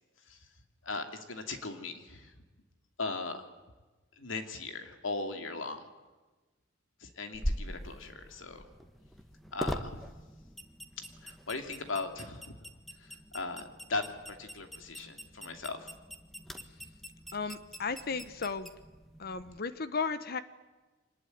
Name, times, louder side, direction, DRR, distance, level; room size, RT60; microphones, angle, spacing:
voice 1, 0.8-2.3 3.0-3.4 4.2-5.8 7.0-8.7 9.5-10.0 11.0-12.5 13.0-15.9, left 3 dB, 85° left, 6 dB, 2.7 m, -38 dB
sound 1, 7.3-19.6, equal, ahead, 1.4 m, -43 dB
voice 2, 17.3-18.7 19.2-20.4, left 5 dB, 50° left, 13 dB, 0.9 m, -35 dB
25.0 x 20.0 x 9.4 m, 1.2 s
head